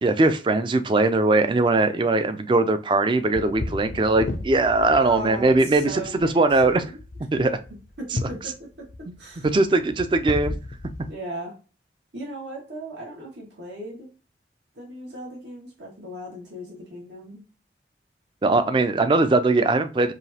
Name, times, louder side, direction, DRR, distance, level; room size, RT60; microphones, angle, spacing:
voice 1, 0.0-6.8 7.3-7.6 9.5-10.6 18.4-20.1, right 2 dB, 30° right, 10 dB, 0.3 m, -20 dB
sound 1, 3.3-11.1, left 2 dB, 45° left, 0.4 m, -35 dB
voice 2, 3.5-3.9 4.9-7.0 7.3-7.5 8.0-8.9 9.2-9.5 11.1-11.6 12.1-14.1 14.7-17.4, right 2 dB, 85° right, -3 dB, 1.7 m, -36 dB
4.9 x 2.8 x 2.8 m, 0.34 s
head